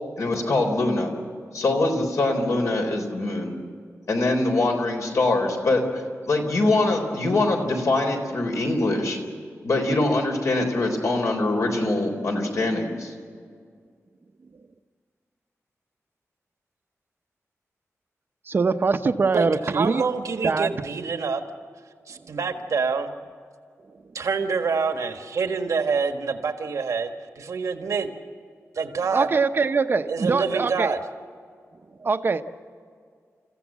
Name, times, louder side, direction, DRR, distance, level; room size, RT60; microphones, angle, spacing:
voice 1, 0.2-1.1 1.5-3.5 4.1-5.8 6.3-9.2 9.6-13.1, left 2 dB, 70° left, 3 dB, 3.8 m, -23 dB
voice 2, 18.5-20.0 20.4-20.7 29.1-30.9 32.0-32.4, right 4 dB, 45° right, 9 dB, 0.8 m, -23 dB
voice 3, 19.3-21.4 22.1-23.1 24.1-28.1 28.7-29.3 30.1-31.0, right 5 dB, 85° right, 6 dB, 1.5 m, -26 dB
29.5 x 15.0 x 7.4 m, 2.1 s
wide cardioid pair, 175°, 5 cm